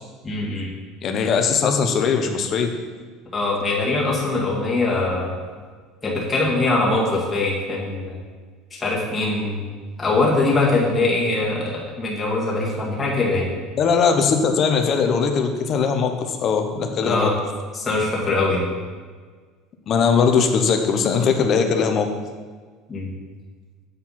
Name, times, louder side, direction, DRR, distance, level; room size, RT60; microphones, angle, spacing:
voice 1, 0.2-0.7 3.3-5.3 6.0-8.2 8.8-9.6 10.0-13.5 17.0-17.3 17.7-18.7 22.9-23.1, left 2 dB, 15° left, -5 dB, 1.7 m, -22 dB
voice 2, 1.0-2.7 13.7-17.3 19.9-22.1, left 6 dB, 30° left, 5 dB, 0.7 m, -20 dB
7.8 x 4.6 x 5.7 m, 1.5 s
cardioid pair, 175°, 0 cm